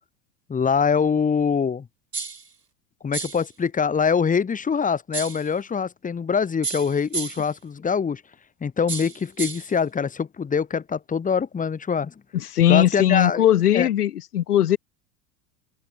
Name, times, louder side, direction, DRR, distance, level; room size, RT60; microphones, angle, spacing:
voice 1, 0.5-1.9 3.0-8.2 8.6-12.1 12.7-13.4 13.7-13.9, left 6 dB, 15° left, 2.0 m, -24 dB
sound 1, 2.1-2.5 3.1-3.5 5.1-5.5 6.6-7.5 8.9-9.7, right 5 dB, 90° right, 3.4 m, -32 dB
voice 2, 12.3-14.8, left 11 dB, 75° left, 1.1 m, -19 dB
open air
figure-of-eight pair, 85°, 46 cm